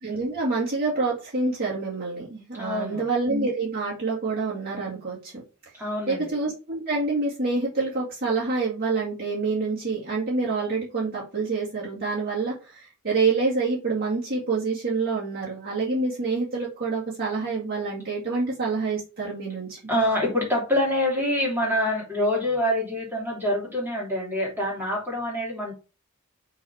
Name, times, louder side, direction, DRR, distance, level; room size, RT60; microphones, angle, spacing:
voice 1, 0.0-5.3 6.1-19.8, right 3 dB, 45° right, -7 dB, 2.1 m, -27 dB
voice 2, 2.6-3.1 5.7-6.3 19.9-25.7, left 1 dB, 10° right, -3 dB, 3.0 m, -26 dB
5.7 x 4.0 x 4.7 m, 0.32 s
head